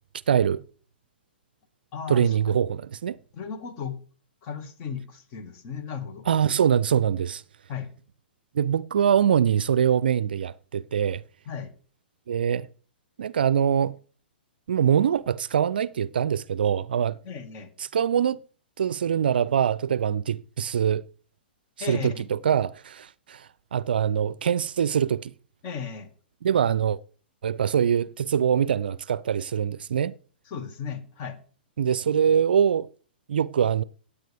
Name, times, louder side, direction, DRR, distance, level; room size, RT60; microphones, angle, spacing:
voice 1, 0.3-0.6 2.1-3.2 6.3-7.4 8.5-11.2 12.3-12.7 13.2-13.9 14.7-17.2 17.9-18.4 18.8-21.0 21.8-25.3 26.4-27.0 27.4-30.2 31.8-32.9 33.3-33.8, right 8 dB, 65° right, 0.5 m, -23 dB
voice 2, 1.9-2.4 3.3-4.0 4.4-6.2 7.7-7.9 11.5-11.7 17.2-17.7 21.8-22.3 25.6-26.1 30.5-31.4, left 6 dB, 35° left, 2.0 m, -35 dB
16.5 x 8.7 x 3.5 m
figure-of-eight pair, 115°, 6 cm